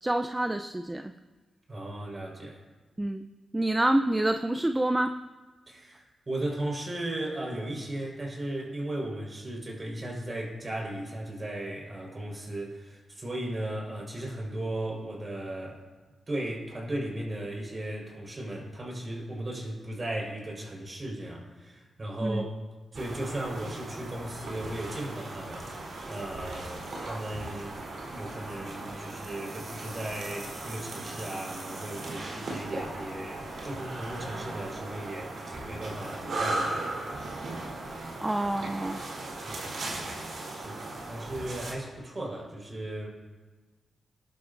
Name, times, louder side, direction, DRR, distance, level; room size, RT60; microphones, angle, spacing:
voice 1, 0.0-1.1 3.0-3.3 3.5-5.2 22.2-22.4 38.2-39.0, right 1 dB, 15° right, 7 dB, 0.6 m, -27 dB
voice 2, 1.7-2.6 5.7-15.8 16.3-22.5 22.9-25.7 26.1-27.8 28.1-37.2 39.4-39.9 40.5-43.1, right 1 dB, 40° right, -1 dB, 5.0 m, -36 dB
sound 1, 22.9-41.7, right 2 dB, 70° right, 3.8 m, -37 dB
21.5 x 11.5 x 2.7 m, 1.3 s
cardioid pair, 55°, 0 cm